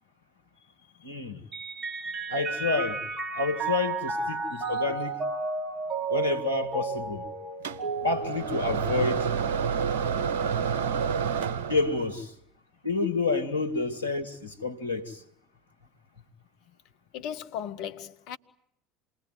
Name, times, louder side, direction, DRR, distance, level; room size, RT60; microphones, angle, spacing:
voice 1, 1.0-1.4 2.3-3.0 3.4-5.2 6.1-7.3 8.0-9.3 11.7-12.3 12.8-15.2, left 3 dB, 90° left, 1.9 m, -29 dB
Mallet percussion, 1.5-9.3, right 4 dB, 35° right, 3.0 m, -33 dB
sound 1, 7.6-12.1, right 6 dB, 70° right, 1.1 m, -29 dB
voice 2, 17.1-18.4, left 9 dB, 60° left, 1.2 m, -38 dB
28.0 x 21.0 x 9.5 m
figure-of-eight pair, 70°, 0 cm